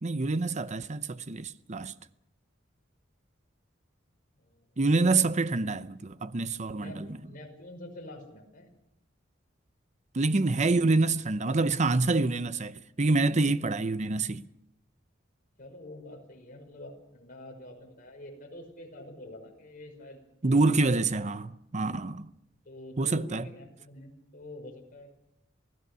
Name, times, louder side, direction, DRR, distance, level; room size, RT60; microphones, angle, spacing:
voice 1, 0.0-1.9 4.8-5.9 6.2-7.2 10.1-14.4 20.4-22.3 23.0-23.4, right 3 dB, 35° right, 0.7 m, -26 dB
voice 2, 5.1-5.7 6.7-8.7 15.6-20.7 21.7-22.0 22.7-25.1, left 1 dB, 45° left, 5.6 m, -46 dB
28.0 x 17.0 x 6.9 m
head